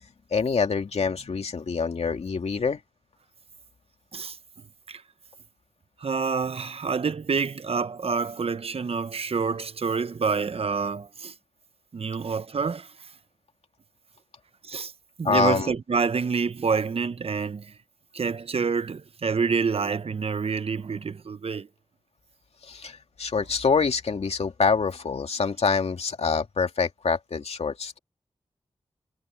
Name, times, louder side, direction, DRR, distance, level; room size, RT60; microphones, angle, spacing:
voice 1, 0.3-2.8 15.2-15.7 22.6-28.0, left 5 dB, 75° left, 2.5 m, -25 dB
voice 2, 6.0-11.3 11.9-13.1 14.6-14.9 15.2-17.8 18.1-21.7, right 5 dB, 65° right, 0.9 m, -27 dB
cardioid pair, 45°, 11 cm